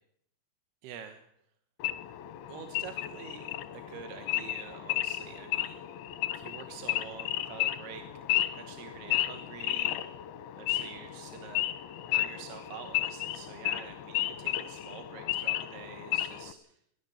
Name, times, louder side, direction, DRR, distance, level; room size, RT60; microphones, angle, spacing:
voice 1, 0.8-1.2 2.5-6.0 6.3-8.0 8.3-10.2 10.6-11.7 12.1-16.7, right 8 dB, 70° right, 7 dB, 3.1 m, -47 dB
Wild animals / Idling, 1.8-16.5, left 14 dB, 75° left, 2.9 m, -33 dB
22.0 x 16.5 x 7.2 m, 0.69 s
omnidirectional pair, 5.1 m